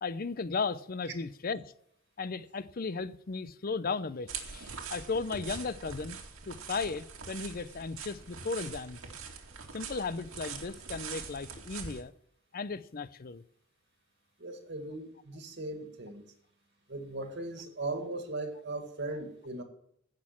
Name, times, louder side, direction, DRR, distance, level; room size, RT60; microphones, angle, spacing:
voice 1, 0.0-1.7 2.2-6.2 6.5-9.0 9.7-12.1 12.5-13.4, left 4 dB, 45° left, 0.6 m, -35 dB
sound 1, 4.3-12.0, right 6 dB, 80° right, 2.3 m, -43 dB
voice 2, 14.4-16.3 16.9-19.6, right 2 dB, 55° right, 2.0 m, -38 dB
16.0 x 6.5 x 5.9 m
head